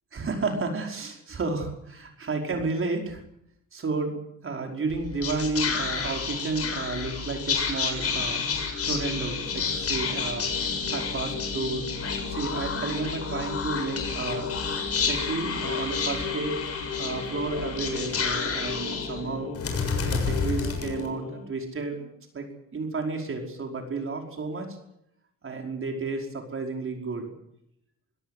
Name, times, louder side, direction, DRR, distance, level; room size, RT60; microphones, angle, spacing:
voice 1, 0.1-3.2 3.7-11.9 12.2-14.5 15.0-16.6 17.0-19.5 20.1-22.5 22.7-24.8 25.4-27.3, right 3 dB, 45° right, 2 dB, 5.1 m, -32 dB
Whispering, 4.9-21.5, left 5 dB, 50° left, 7.0 m, -30 dB
24.5 x 17.5 x 8.2 m, 0.75 s
cardioid pair, 90°, 30 cm